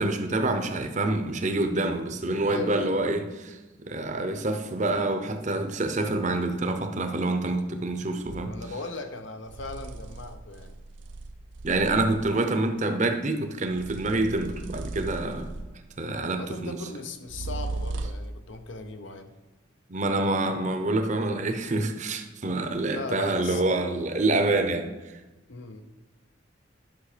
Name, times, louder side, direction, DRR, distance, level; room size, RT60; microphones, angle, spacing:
voice 1, 0.0-8.5 11.6-15.5 16.0-16.8 19.9-25.2, right 2 dB, 40° right, 0.8 m, -27 dB
voice 2, 2.5-3.0 8.5-10.7 16.3-19.3 22.9-23.6 25.5-25.8, left 3 dB, 70° left, 0.8 m, -38 dB
sound 1, 8.2-8.6 9.5-12.4 13.7-15.9 17.3-18.4, right 2 dB, 70° right, 0.6 m, -37 dB
10.5 x 6.2 x 5.0 m
head